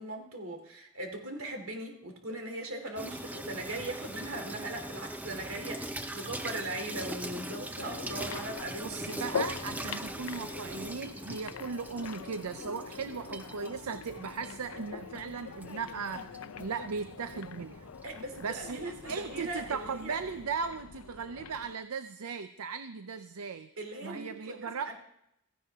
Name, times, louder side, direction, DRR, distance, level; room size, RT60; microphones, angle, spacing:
voice 1, 0.0-9.2 18.0-20.1 23.8-24.9, right 2 dB, 70° right, 4 dB, 2.9 m, -39 dB
Water tap faucet / Sink (filling or washing), 3.0-20.4, right 1 dB, 5° right, 0.6 m, -42 dB
sound 1, 7.8-21.7, left 6 dB, 80° left, 0.6 m, -43 dB
voice 2, 8.8-16.3 16.6-17.8 18.4-23.7 24.0-24.9, right 5 dB, 90° right, 10 dB, 0.6 m, -37 dB
16.0 x 15.5 x 3.6 m, 0.80 s
head